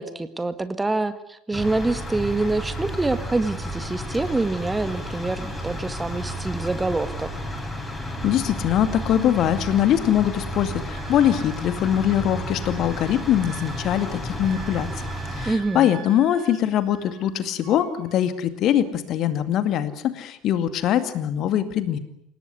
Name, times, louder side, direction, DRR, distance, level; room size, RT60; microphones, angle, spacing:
voice 1, 0.0-7.3 15.5-15.9, right 2 dB, 15° right, 11 dB, 1.9 m, -26 dB
sound 1, 1.5-15.5, equal, 10° left, 7.8 m, -32 dB
voice 2, 8.2-14.9 15.3-22.0, left 10 dB, 45° left, 11 dB, 2.2 m, -22 dB
Wind instrument woodwind instrument, 10.9-17.3 17.6-18.2, right 10 dB, 50° right, 2.9 m, -46 dB
28.5 x 18.0 x 9.6 m, 0.76 s
figure-of-eight pair, 65°, 0 cm